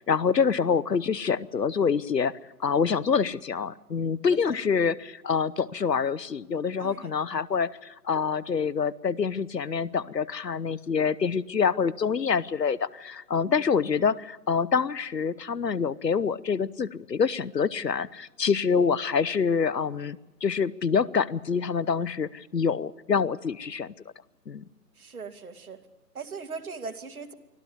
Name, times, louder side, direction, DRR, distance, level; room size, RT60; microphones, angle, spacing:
voice 1, 0.0-2.3 2.6-23.9 24.5-24.7, left 6 dB, 80° left, 20 dB, 1.0 m, -26 dB
voice 2, 6.8-7.1 13.5-13.6 25.0-25.8 26.1-27.3, right 4 dB, 60° right, 8 dB, 2.4 m, -39 dB
24.5 x 15.0 x 9.5 m, 0.98 s
figure-of-eight pair, 145°, 48 cm